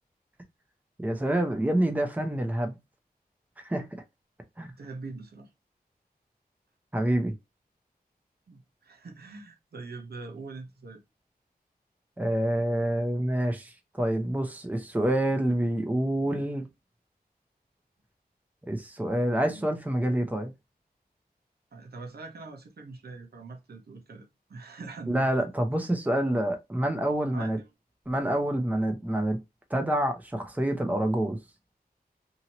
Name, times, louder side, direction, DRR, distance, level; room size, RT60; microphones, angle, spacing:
voice 1, 1.0-2.8 3.6-3.9 4.6-4.7 6.9-7.3 12.2-16.7 18.7-20.5 25.1-27.6 28.1-29.4 29.7-31.4, right 1 dB, 10° right, 0.7 m, -27 dB
voice 2, 4.8-5.5 8.5-11.0 19.5-19.6 21.7-25.5 27.3-27.7, right 3 dB, 80° right, 0.8 m, -43 dB
2.8 x 2.7 x 2.9 m
wide cardioid pair, 75°, 16 cm